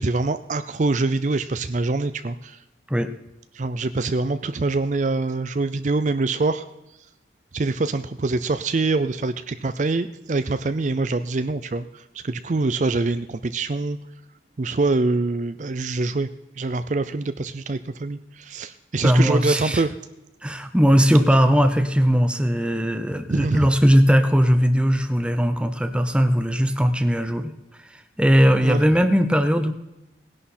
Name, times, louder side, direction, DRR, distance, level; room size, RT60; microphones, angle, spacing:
voice 1, 0.0-2.6 3.5-6.7 7.5-14.0 14.6-16.3 16.6-19.9 23.3-23.7 28.6-28.8, right 3 dB, 40° right, 11 dB, 0.5 m, -24 dB
voice 2, 19.0-19.8 20.4-27.5 28.2-29.7, equal, 5° right, 8 dB, 0.8 m, -19 dB
18.0 x 11.0 x 4.3 m, 0.94 s
head